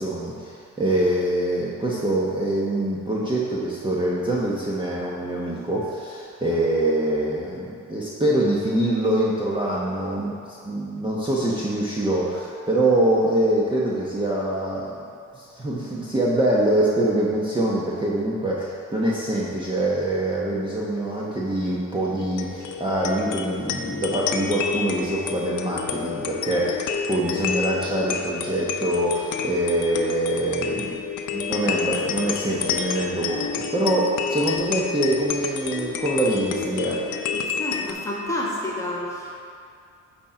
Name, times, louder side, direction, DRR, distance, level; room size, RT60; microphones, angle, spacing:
voice 1, 0.0-14.9 15.3-31.0 31.3-37.1, right 1 dB, 15° right, -6 dB, 1.0 m, -24 dB
sound 1, 22.2-37.9, left 6 dB, 80° left, 0.7 m, -29 dB
voice 2, 37.6-39.4, left 1 dB, 10° left, -5 dB, 1.6 m, -29 dB
8.2 x 4.4 x 5.0 m, 2.4 s
cardioid pair, 90°, 30 cm